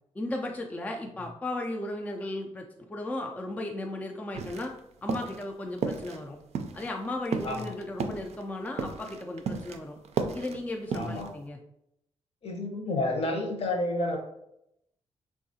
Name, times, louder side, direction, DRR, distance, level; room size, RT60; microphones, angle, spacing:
voice 1, 0.2-4.7 5.0-6.4 6.7-10.0 10.3-11.6, left 1 dB, 10° left, 2 dB, 0.3 m, -35 dB
sound 1, 4.3-4.8 5.1-5.4 5.8-6.2 6.5-9.8 10.0-11.3, right 5 dB, 60° right, 0.4 m, -34 dB
voice 2, 10.9-11.3 12.4-14.2, left 2 dB, 55° left, 1 dB, 0.8 m, -30 dB
3.5 x 2.3 x 2.7 m, 0.80 s
cardioid pair, 100°, 12 cm